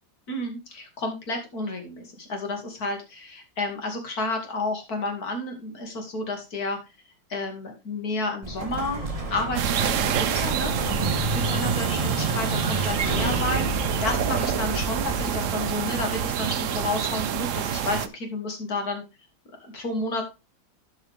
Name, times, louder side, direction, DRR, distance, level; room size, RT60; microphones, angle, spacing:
voice 1, 0.3-6.8 7.3-9.0 9.3-10.7 11.3-19.0 19.6-20.2, left 2 dB, 50° left, 3 dB, 2.8 m, -31 dB
Explosion, 8.4-17.1, right 2 dB, 20° right, 1.2 m, -30 dB
sound 1, 9.5-18.1, right 9 dB, 85° right, 0.6 m, -27 dB
12.5 x 5.6 x 3.4 m, 0.26 s
omnidirectional pair, 2.2 m